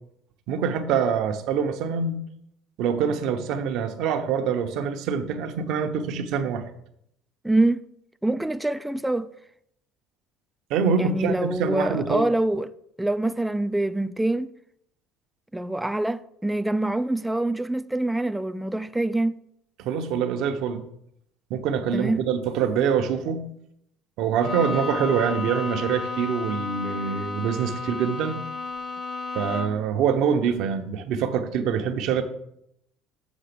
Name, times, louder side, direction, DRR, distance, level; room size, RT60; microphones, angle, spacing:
voice 1, 0.5-2.2 2.8-6.6 10.7-12.3 19.8-20.8 21.5-23.5 24.2-28.4 29.3-32.2, right 7 dB, 65° right, 1.0 m, -25 dB
voice 2, 7.4-7.8 8.2-9.3 11.0-14.5 15.5-19.4 21.9-22.2, right 2 dB, 5° right, 0.3 m, -25 dB
Bowed string instrument, 24.4-29.9, left 4 dB, 45° left, 0.9 m, -32 dB
7.1 x 4.9 x 6.8 m
cardioid pair, 125°, 0 cm